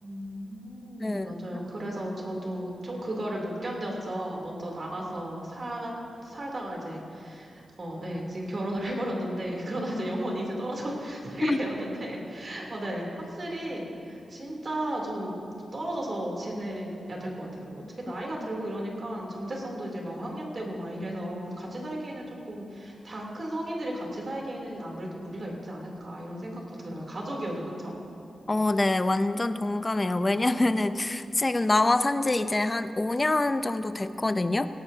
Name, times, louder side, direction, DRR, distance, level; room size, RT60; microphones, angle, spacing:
voice 1, 0.0-5.9 6.2-27.9, right 1 dB, 40° right, -2 dB, 3.1 m, -34 dB
voice 2, 1.0-1.3 10.0-10.1 11.4-11.6 28.5-34.7, left 2 dB, 20° left, 11 dB, 0.5 m, -25 dB
17.5 x 17.5 x 2.8 m, 2.6 s
wide cardioid pair, 120°, 0 cm